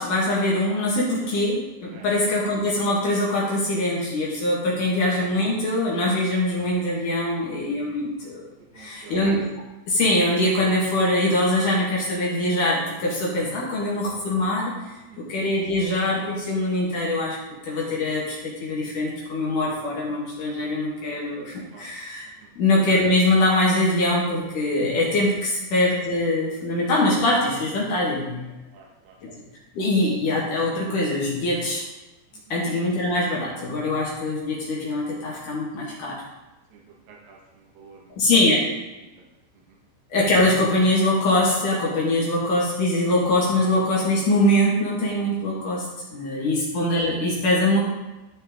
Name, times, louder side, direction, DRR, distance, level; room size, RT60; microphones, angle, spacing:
voice 1, 0.0-8.4 8.8-9.4 9.9-17.4 17.6-22.3 22.6-28.4 29.2-29.3 29.7-31.8 32.5-36.2 38.2-38.7 40.1-47.8, left 1 dB, 55° left, -4 dB, 2.7 m, -23 dB
voice 2, 8.7-9.2 14.9-15.2 21.7-21.9 22.4-22.5 28.7-29.2 32.3-32.6 36.7-38.2 39.2-39.3 39.7-39.8 46.4-46.5, right 5 dB, 60° right, -2 dB, 2.7 m, -50 dB
13.5 x 6.6 x 3.8 m, 1.1 s
omnidirectional pair, 5.5 m